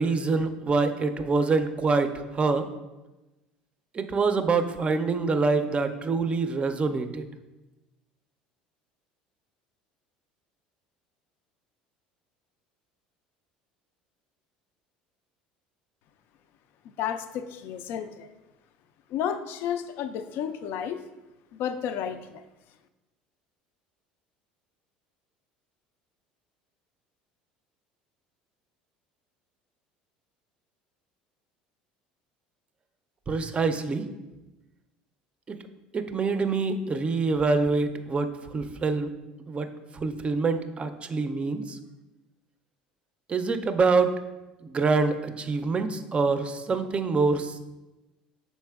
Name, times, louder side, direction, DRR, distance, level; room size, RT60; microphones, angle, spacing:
voice 1, 0.0-2.7 3.9-7.3 33.3-34.0 35.5-35.6 35.9-39.1 39.5-39.7 39.9-41.8 43.3-44.1 44.6-47.6, right 4 dB, 30° right, 9 dB, 0.4 m, -25 dB
voice 2, 16.8-18.3 19.1-21.0 21.5-22.4, left 8 dB, 60° left, 10 dB, 0.3 m, -32 dB
5.5 x 4.1 x 2.3 m, 1.1 s
hypercardioid pair, 75°, 4 cm